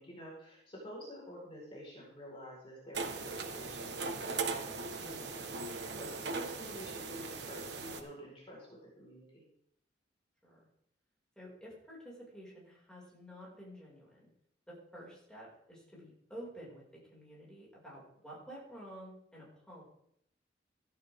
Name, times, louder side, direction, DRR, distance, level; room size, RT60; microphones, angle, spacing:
voice 1, 0.0-9.4, equal, 35° left, -4 dB, 4.7 m, -49 dB
sound 1, 2.9-8.0, right 4 dB, 70° right, 1.4 m, -39 dB
voice 2, 11.4-14.3 14.7-19.8, equal, 5° left, -5 dB, 5.7 m, -50 dB
15.5 x 11.5 x 3.7 m, 0.72 s
head